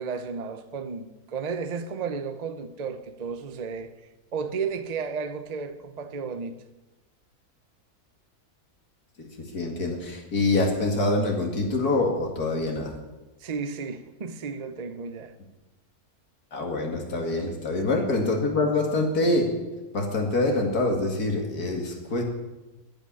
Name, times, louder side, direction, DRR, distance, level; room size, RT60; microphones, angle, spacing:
voice 1, 0.0-3.9 4.3-6.6 13.4-15.3 17.9-18.1, right 5 dB, 40° right, 0.6 m, -33 dB
voice 2, 9.4-12.9 16.5-19.5 19.9-22.2, left 2 dB, 75° left, 2.6 m, -25 dB
10.5 x 8.9 x 9.6 m
omnidirectional pair, 1.6 m